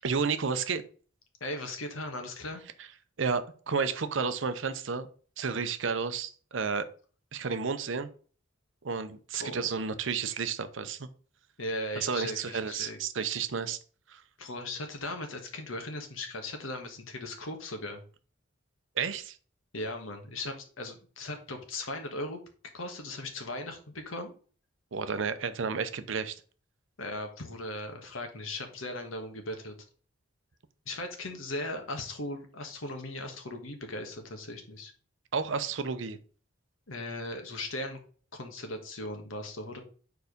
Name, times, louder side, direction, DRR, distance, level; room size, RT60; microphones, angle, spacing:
voice 1, 0.0-0.8 3.2-5.1 5.4-6.9 7.3-8.1 8.8-11.1 12.0-13.8 14.1-14.2 19.0-19.4 24.9-26.4 35.3-36.2, right 5 dB, 65° right, 11 dB, 0.6 m, -31 dB
voice 2, 1.4-2.6 9.3-9.7 11.6-13.0 14.4-18.0 19.7-22.4 22.7-24.3 27.0-29.7 30.8-34.9 36.9-38.0 38.3-39.8, left 1 dB, 85° left, 5 dB, 1.4 m, -38 dB
4.7 x 4.7 x 5.1 m, 0.41 s
head